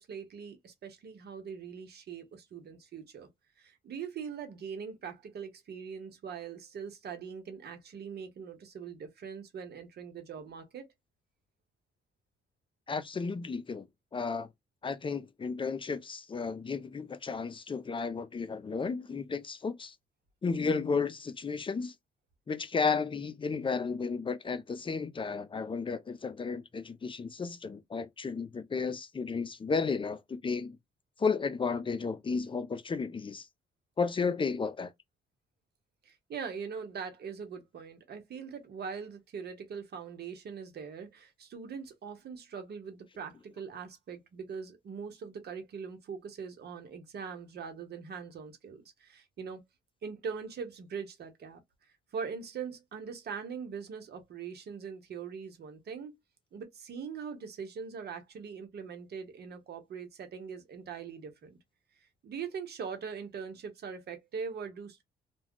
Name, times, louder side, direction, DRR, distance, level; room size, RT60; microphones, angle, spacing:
voice 1, 0.0-3.3 3.6-10.9 36.0-49.6 50.0-51.6 52.1-56.1 56.5-61.6 62.2-65.0, right 6 dB, 60° right, 1.0 m, -42 dB
voice 2, 12.9-13.8 14.1-14.5 14.8-19.9 20.4-21.9 22.5-30.8 31.2-33.4 34.0-34.9, left 5 dB, 25° left, 0.5 m, -33 dB
2.3 x 2.3 x 3.6 m
supercardioid pair, 60°, 19 cm